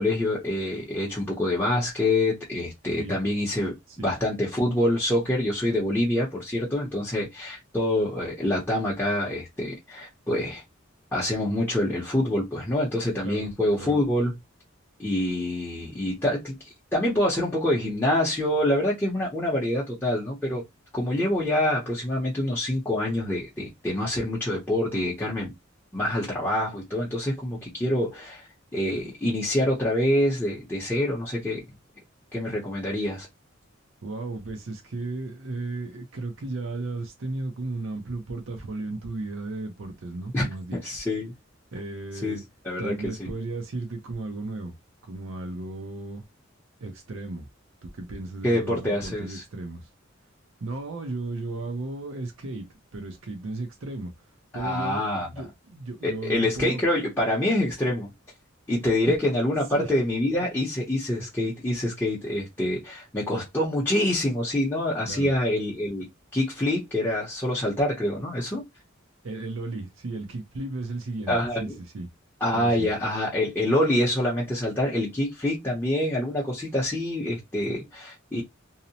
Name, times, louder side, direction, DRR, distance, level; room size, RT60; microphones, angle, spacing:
voice 1, 0.0-10.6 11.1-14.3 15.0-16.6 16.9-20.6 20.9-25.5 25.9-28.5 28.7-31.6 32.3-33.3 40.3-40.5 40.7-41.3 42.2-42.4 42.6-43.3 48.4-49.4 54.5-55.3 56.0-58.1 58.7-66.0 66.3-68.6 71.3-71.8 72.4-78.4, left 1 dB, 10° left, 0.7 m, -26 dB
voice 2, 34.0-41.0 41.7-42.4 42.8-44.8 45.0-46.2 46.8-47.5 47.8-49.9 50.6-56.8 59.1-59.2 59.7-59.9 65.1-65.3 69.2-72.1 72.5-72.9, right 2 dB, 75° right, 0.6 m, -35 dB
2.7 x 2.0 x 2.7 m
head